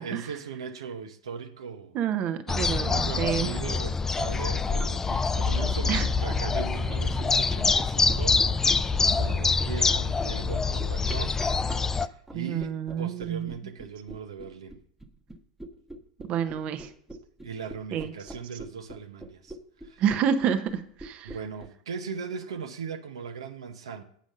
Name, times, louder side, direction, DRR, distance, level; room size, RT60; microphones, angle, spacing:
voice 1, 0.0-2.0 2.8-11.4 11.9-14.8 17.4-19.6 19.8-20.0 21.2-24.0, right 6 dB, 80° right, 0.7 m, -39 dB
voice 2, 1.9-3.6 5.9-6.0 12.3-13.5 16.3-16.9 17.9-18.1 20.0-21.4, right 8 dB, 45° right, 0.8 m, -28 dB
sound 1, 2.5-12.1, left 4 dB, 15° left, 0.3 m, -25 dB
sound 2, 4.8-21.7, right 1 dB, 10° right, 1.0 m, -43 dB
8.4 x 5.1 x 6.5 m
hypercardioid pair, 95°, 3 cm